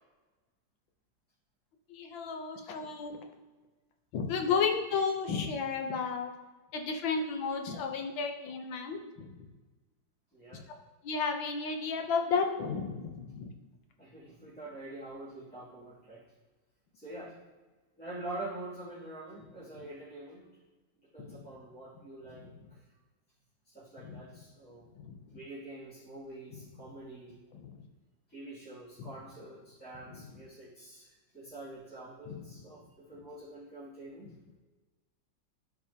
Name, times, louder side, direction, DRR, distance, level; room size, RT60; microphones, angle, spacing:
voice 1, 1.9-3.2 4.1-6.3 6.7-9.4 10.5-10.6 11.0-13.5 21.3-21.4 22.3-22.5 24.0-24.2 25.0-25.2 27.5-27.8 29.0-29.1 30.0-30.4 32.3-32.4, left 5 dB, 85° left, 4 dB, 1.6 m, -33 dB
voice 2, 10.3-10.6 14.0-16.2 16.9-17.4 18.0-20.4 21.1-22.5 23.7-24.9 25.3-27.4 28.3-34.3, right 2 dB, 5° left, -12 dB, 2.3 m, -45 dB
12.5 x 4.8 x 2.8 m, 1.2 s
omnidirectional pair, 2.0 m